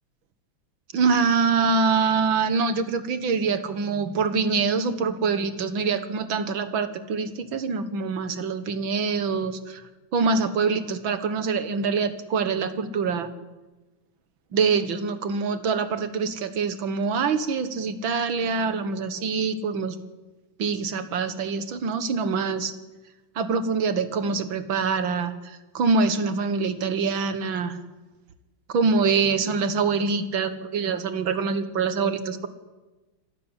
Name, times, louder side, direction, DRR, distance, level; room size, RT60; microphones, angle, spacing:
voice 1, 0.9-9.8 10.1-13.3 14.5-20.0 20.6-22.7 23.4-27.8 28.7-32.5, right 5 dB, 75° right, 11 dB, 2.1 m, -25 dB
25.5 x 12.5 x 10.0 m, 1.2 s
omnidirectional pair, 2.2 m